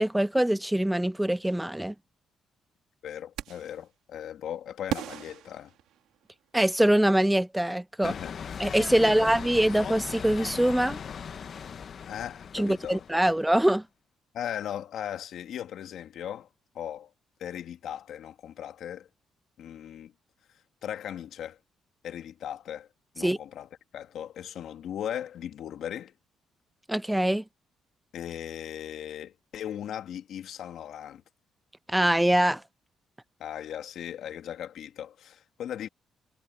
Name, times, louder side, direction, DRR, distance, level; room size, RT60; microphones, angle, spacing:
voice 1, 0.0-1.9 6.5-8.1 8.6-11.0 12.5-13.8 23.2-23.4 26.9-27.4 31.9-32.6, right 1 dB, 5° right, 0.6 m, -23 dB
voice 2, 3.0-5.7 8.0-8.3 8.9-9.3 12.0-13.3 14.3-16.5 16.7-17.1 17.4-19.1 19.6-20.1 20.8-21.6 22.0-22.9 23.1-26.1 28.1-31.2 33.4-35.9, left 10 dB, 75° left, 2.1 m, -38 dB
sound 1, 3.4-3.8 4.9-6.4, right 12 dB, 85° right, 3.8 m, -37 dB
sound 2, 8.0-13.4, left 7 dB, 50° left, 1.1 m, -39 dB
cardioid pair, 90°, 0 cm